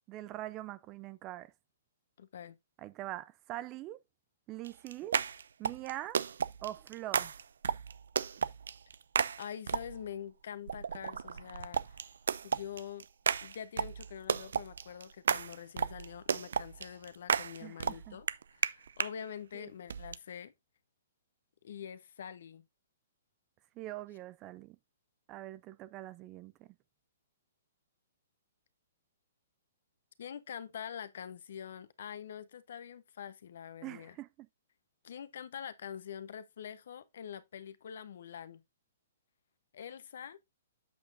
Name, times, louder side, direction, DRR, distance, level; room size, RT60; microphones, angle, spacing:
voice 1, 0.1-1.5 2.8-4.0 4.5-5.2 5.6-6.2 6.6-7.3 17.6-18.2 19.5-19.7 23.8-24.8 25.3-26.7 33.8-34.5, right 15 dB, 20° right, 0.4 m, -43 dB
voice 2, 2.2-2.6 9.4-12.0 12.4-13.1 13.4-18.3 18.5-20.5 21.6-22.6 30.2-34.2 35.0-38.6 39.7-40.4, left 8 dB, 65° left, 1.0 m, -45 dB
sound 1, 4.6-10.1 10.7-19.1 19.9-20.2, right 7 dB, 80° right, 0.5 m, -34 dB
7.8 x 6.9 x 2.6 m
hypercardioid pair, 160°, 0 cm